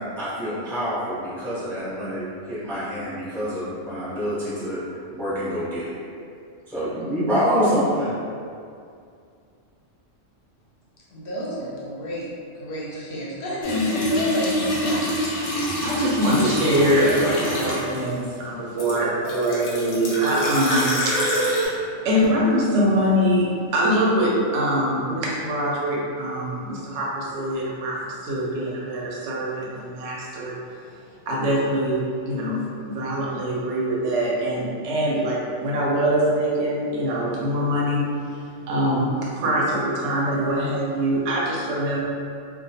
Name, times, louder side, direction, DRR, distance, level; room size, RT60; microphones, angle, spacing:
voice 1, 0.0-5.9 6.7-8.1, equal, 5° left, -11 dB, 0.4 m, -26 dB
voice 2, 11.1-12.3 12.5-15.0, left 1 dB, 60° left, -6 dB, 0.7 m, -29 dB
sound 1, 13.6-18.1 18.8-21.7, equal, 80° left, 0.3 m, -26 dB
voice 3, 15.8-21.7 22.0-30.6 31.3-32.6 32.9-38.0 38.7-42.0, equal, 70° right, -4 dB, 0.8 m, -23 dB
2.2 x 2.2 x 2.7 m, 2.4 s
omnidirectional pair, 1.3 m